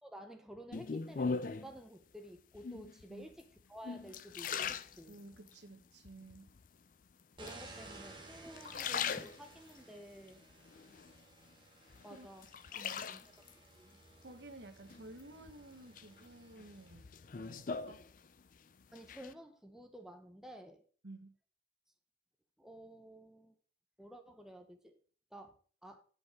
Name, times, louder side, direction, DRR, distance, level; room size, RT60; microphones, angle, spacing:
voice 1, 0.0-3.4 3.7-5.1 7.4-10.4 12.0-12.5 12.7-13.3 13.8-14.0 18.9-20.8 22.6-23.6 24.0-25.0 25.3-25.6 25.8-26.0, equal, 5° right, 4 dB, 0.8 m, -52 dB
sound 1, 0.7-1.8 2.6-3.1 3.6-5.6 6.1-6.7 7.5-8.1 8.5-9.8 10.3-11.5 11.9-13.5 14.9-15.5 16.0-18.6 18.8-19.3, left 5 dB, 45° left, 0.4 m, -40 dB
voice 2, 5.1-6.5 12.1-12.3 12.7-13.1 14.2-18.0 21.0-21.4, right 2 dB, 70° right, 7 dB, 1.2 m, -53 dB
sound 2, 7.4-16.9, right 3 dB, 25° right, 1.5 m, -56 dB
9.6 x 5.3 x 5.0 m, 0.41 s
head